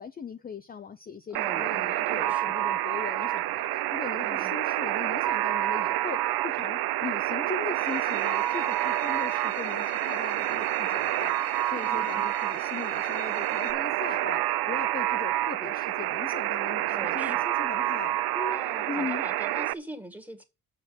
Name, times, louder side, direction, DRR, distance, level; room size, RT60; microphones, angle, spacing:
voice 1, 0.0-18.6 18.9-19.2, left 6 dB, 25° left, 0.5 m, -39 dB
voice 2, 1.3-2.5 4.2-4.6 11.8-12.3 16.9-17.4 18.5-20.4, right 1 dB, 5° right, 1.8 m, -41 dB
Alarm, 1.3-19.7, right 15 dB, 75° right, 0.5 m, -28 dB
sound 1, 3.0-3.8 4.1-4.3 4.8-6.1 6.4-12.1 12.5-16.7 17.0-17.7, right 6 dB, 45° right, 1.4 m, -49 dB
Bowed string instrument, 7.7-13.7, left 12 dB, 85° left, 1.5 m, -45 dB
7.5 x 6.5 x 7.8 m
cardioid pair, 140°, 38 cm